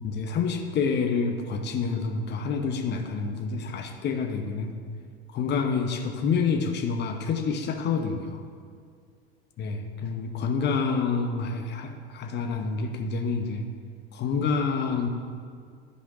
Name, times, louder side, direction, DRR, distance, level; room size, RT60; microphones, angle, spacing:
voice 1, 0.0-4.7 5.3-8.4 9.6-13.7 14.1-15.1, left 5 dB, 30° left, 5 dB, 0.9 m, -28 dB
11.5 x 5.2 x 5.0 m, 2.1 s
figure-of-eight pair, 80°, 32 cm